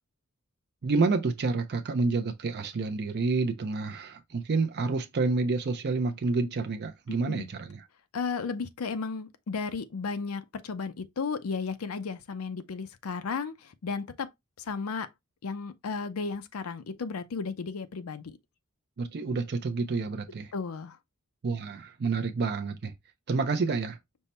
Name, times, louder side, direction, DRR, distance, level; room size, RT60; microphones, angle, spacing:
voice 1, 0.8-7.9 19.0-20.5 21.4-22.9 23.3-24.0, right 4 dB, 50° right, 0.5 m, -29 dB
voice 2, 8.1-14.3 14.6-15.1 15.4-18.4 20.5-21.0, left 4 dB, 85° left, 0.5 m, -34 dB
5.4 x 2.2 x 4.1 m
head